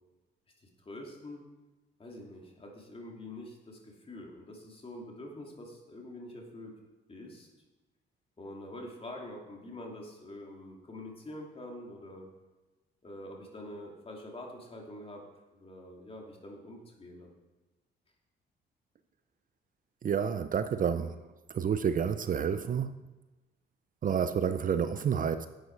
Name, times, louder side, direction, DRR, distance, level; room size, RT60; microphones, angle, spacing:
voice 1, 0.6-1.4 2.0-6.7 7.1-7.5 8.4-12.3 13.0-15.2 15.5-17.3, left 1 dB, 30° left, 0 dB, 2.7 m, -45 dB
voice 2, 20.0-21.2 21.5-22.9 24.0-25.5, right 7 dB, 45° right, 11 dB, 0.5 m, -29 dB
11.5 x 8.7 x 4.6 m, 1.1 s
cardioid pair, 90°, 20 cm